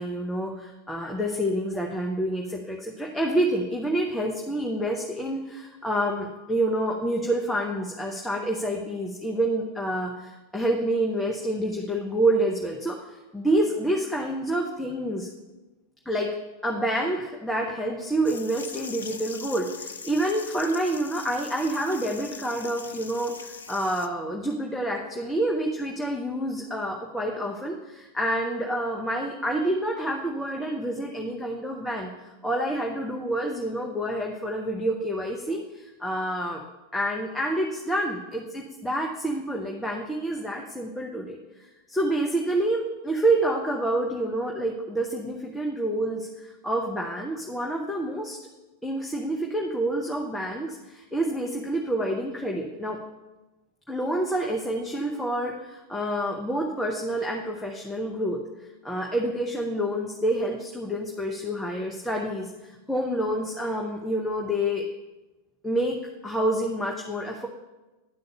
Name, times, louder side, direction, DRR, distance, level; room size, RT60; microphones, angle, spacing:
voice 1, 0.0-15.3 16.1-16.3 16.6-36.6 36.9-41.4 41.9-48.4 48.8-53.0 53.9-58.4 58.8-64.8 65.6-66.0 66.2-67.5, right 1 dB, 5° left, -1 dB, 0.9 m, -28 dB
sound 1, 18.2-24.1, left 5 dB, 70° left, 0.5 m, -41 dB
11.0 x 4.0 x 6.8 m, 1.1 s
figure-of-eight pair, 90°, 0 cm